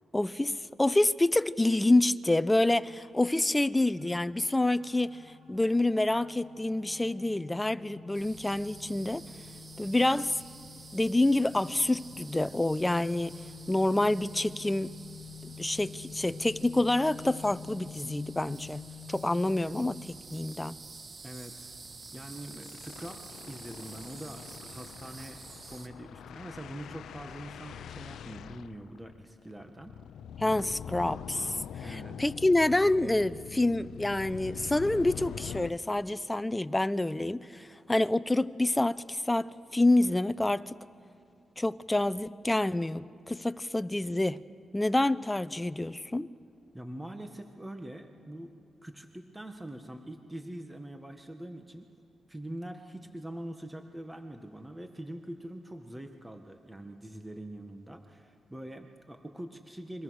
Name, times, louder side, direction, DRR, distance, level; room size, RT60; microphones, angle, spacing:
voice 1, 0.1-5.2 5.5-9.2 9.8-10.4 10.9-14.9 15.6-20.8 30.4-31.5 31.8-40.8 41.6-44.4 44.7-46.3, left 2 dB, 15° left, 0.7 m, -27 dB
sound 1, 4.0-20.0, left 7 dB, 75° right, 4.8 m, -48 dB
sound 2, 8.1-25.9, right 4 dB, 45° right, 1.8 m, -49 dB
sound 3, 19.0-19.2 19.5-19.6 19.9-20.1 20.4-20.5 21.8-35.7, left 8 dB, 90° left, 0.6 m, -44 dB
voice 2, 21.2-21.7 22.1-25.4 25.7-29.9 31.8-32.2 46.7-51.9 52.3-60.0, right 1 dB, 10° right, 1.7 m, -43 dB
29.5 x 23.5 x 6.5 m
cardioid pair, 70°, 0 cm